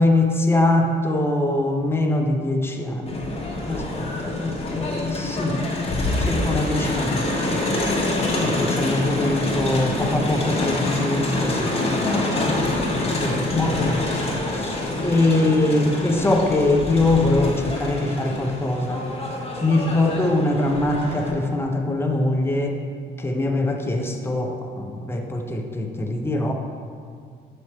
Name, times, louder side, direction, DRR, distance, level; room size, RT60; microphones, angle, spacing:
voice 1, 0.0-5.6 6.2-7.3 8.4-19.1 19.6-22.8 23.2-26.5, left 2 dB, 10° left, 2 dB, 0.6 m, -23 dB
Crowd, 3.1-21.3, left 2 dB, 30° left, 1.1 m, -26 dB
7.0 x 3.1 x 4.2 m, 2.1 s
cardioid pair, 90°, 20 cm